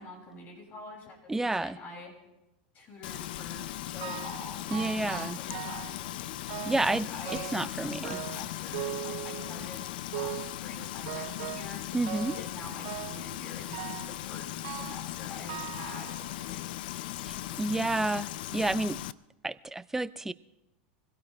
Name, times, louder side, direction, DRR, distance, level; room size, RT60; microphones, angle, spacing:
voice 1, 0.0-2.1 2.7-6.1 6.8-11.8 12.3-16.9, left 2 dB, 40° left, 0 dB, 6.2 m, -46 dB
voice 2, 1.3-1.8 4.7-5.4 6.6-7.1 7.5-8.2 11.9-12.4 17.2-19.0 19.4-20.3, right 2 dB, 5° right, 15 dB, 0.5 m, -30 dB
Frying (food), 3.0-19.1, left 14 dB, 75° left, 0.5 m, -38 dB
sound 1, 4.0-4.5 4.7-6.0 6.5-6.9 7.3-7.7 8.0-9.7 10.1-10.6 11.1-11.8 12.1-12.5 12.8-13.3 13.7-14.2 14.6-15.1 15.5-16.6 17.2-17.3 18.1-18.2 18.7-18.8, right 16 dB, 65° right, 0.7 m, -40 dB
23.5 x 17.0 x 3.3 m, 0.96 s
supercardioid pair, 115°, 5 cm